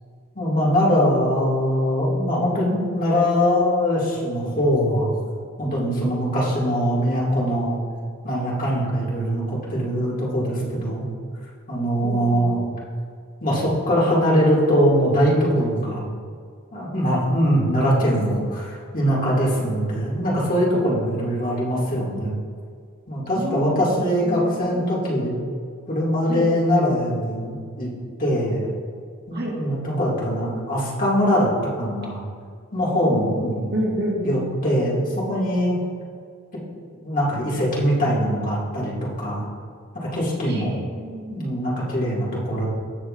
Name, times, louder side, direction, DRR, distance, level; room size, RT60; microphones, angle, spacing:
voice 1, 0.3-5.1 5.6-7.8 8.2-11.1 11.7-12.6 13.4-16.1 16.7-22.4 23.1-25.3 25.9-27.9 28.2-28.7 29.3-31.5 31.7-32.2 32.7-33.7 34.2-35.8 37.0-39.5 40.1-40.8 41.3-42.7, equal, 40° left, -5 dB, 2.3 m, -22 dB
voice 2, 12.0-12.5 17.1-17.2 23.3-23.8 24.3-24.8 26.3-26.5 29.3-29.6 33.7-34.4 40.5-41.4, equal, 50° right, -3 dB, 1.8 m, -29 dB
16.0 x 6.4 x 2.6 m, 2.1 s
head